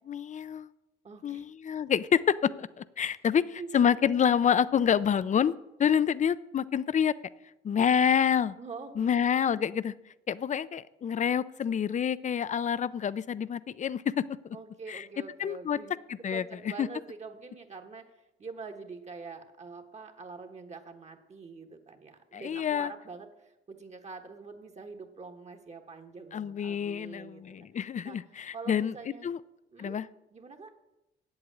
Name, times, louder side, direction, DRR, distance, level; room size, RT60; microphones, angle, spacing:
voice 1, 0.0-0.7 1.2-3.4 3.7-7.1 7.6-8.6 9.0-9.9 10.3-14.6 14.9-15.0 15.4-15.8 16.2-16.4 16.8-16.9 22.3-22.9 26.3-28.9 29.2-29.4 29.8-30.1, left 8 dB, 40° left, 18 dB, 0.5 m, -27 dB
voice 2, 1.0-1.5 3.0-3.7 8.6-9.3 14.5-16.0 16.3-27.7 28.0-28.2 28.5-29.3 29.7-30.0 30.3-30.7, right 4 dB, 35° right, 5 dB, 1.2 m, -45 dB
8.0 x 7.9 x 8.5 m, 0.92 s
cardioid pair, 90°, 20 cm